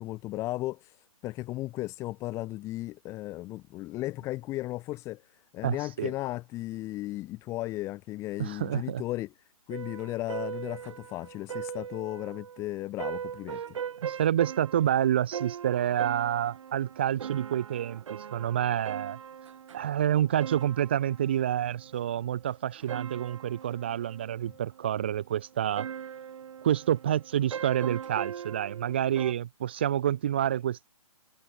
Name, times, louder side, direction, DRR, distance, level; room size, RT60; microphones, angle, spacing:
voice 1, 0.0-5.2 5.5-9.3 9.7-13.8, left 17 dB, 15° left, 1.1 m, -35 dB
voice 2, 5.6-6.1 8.4-9.0 14.0-19.2 19.7-25.9 26.6-30.9, right 10 dB, 20° right, 0.3 m, -28 dB
sound 1, 9.7-29.3, right 8 dB, 55° right, 1.1 m, -40 dB
hypercardioid pair, 155°, 19 cm